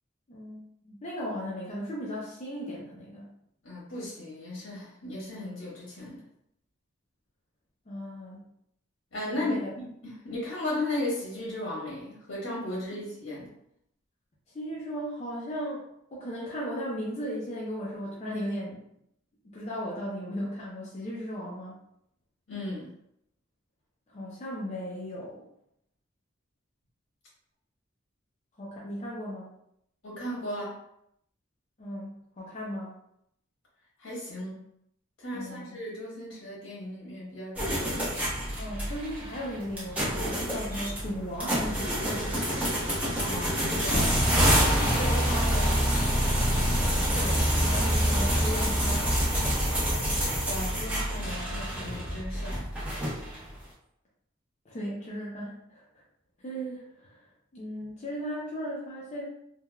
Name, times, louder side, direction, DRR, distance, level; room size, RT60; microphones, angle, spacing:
voice 1, 0.3-3.3 7.9-8.5 9.3-9.7 12.9-13.1 14.5-18.8 19.4-21.7 24.1-25.5 28.6-29.5 31.8-33.0 35.3-35.8 38.6-42.4 47.1-49.5 54.6-56.0 56.4-57.3 57.5-59.3, equal, 35° left, -6 dB, 0.5 m, -37 dB
voice 2, 3.6-6.2 9.1-13.5 22.5-22.9 30.0-30.7 34.0-34.6 35.2-38.1 43.2-47.2 50.4-52.6, left 1 dB, 75° left, -6 dB, 1.4 m, -36 dB
sound 1, 37.5-53.5, equal, 5° right, 0.7 m, -27 dB
3.2 x 2.2 x 2.2 m, 0.76 s
head